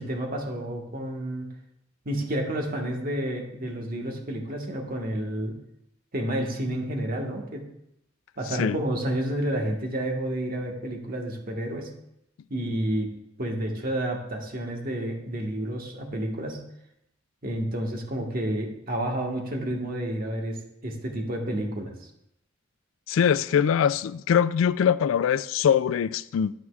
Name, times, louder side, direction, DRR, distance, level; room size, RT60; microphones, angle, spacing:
voice 1, 0.0-1.5 2.0-5.6 6.1-7.6 8.4-11.9 12.5-13.1 13.4-16.6 17.4-21.9, right 1 dB, 50° right, 1.5 m, -30 dB
voice 2, 23.1-26.5, left 8 dB, 80° left, 0.3 m, -22 dB
10.5 x 9.6 x 2.4 m
head